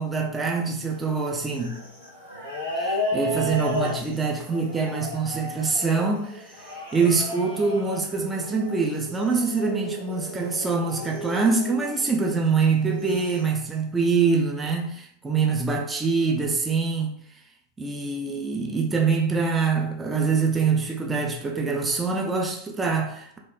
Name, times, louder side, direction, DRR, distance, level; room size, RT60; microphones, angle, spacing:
voice 1, 0.0-1.8 2.8-6.6 6.9-17.1 17.8-23.4, right 4 dB, 15° right, 0.4 m, -24 dB
sound 1, 0.8-12.1 12.8-13.5, left 1 dB, 90° right, 0.8 m, -34 dB
3.0 x 2.0 x 2.3 m
figure-of-eight pair, 90°, 0 cm